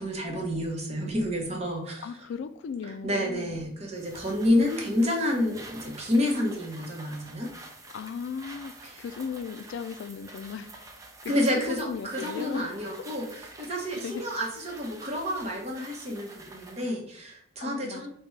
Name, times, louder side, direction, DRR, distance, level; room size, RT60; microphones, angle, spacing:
voice 1, 0.0-2.1 3.0-7.5 8.9-9.0 11.3-13.3 13.6-18.1, left 1 dB, 35° right, 0.9 m, -29 dB
voice 2, 2.0-3.6 7.9-8.7 9.0-10.7 11.2-13.0 14.0-14.2 17.6-18.1, left 6 dB, 75° left, 0.3 m, -37 dB
sound 1, 4.0-16.9, right 2 dB, 20° right, 0.5 m, -48 dB
4.9 x 2.2 x 3.1 m
head